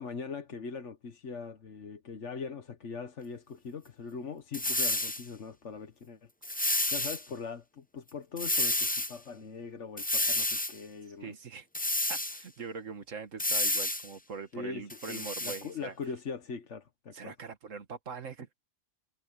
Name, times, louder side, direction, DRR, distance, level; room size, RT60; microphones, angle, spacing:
voice 1, 0.0-11.4 14.5-17.3, left 5 dB, 65° left, 1.6 m, -41 dB
sound 1, 4.5-5.2 6.4-7.2 8.4-9.1 10.0-10.7 11.7-12.4 13.4-14.1 14.9-15.6, left 1 dB, 10° left, 0.4 m, -30 dB
voice 2, 11.2-11.7 12.1-15.9 17.1-18.5, right 5 dB, 75° right, 1.9 m, -42 dB
omnidirectional pair, 1.3 m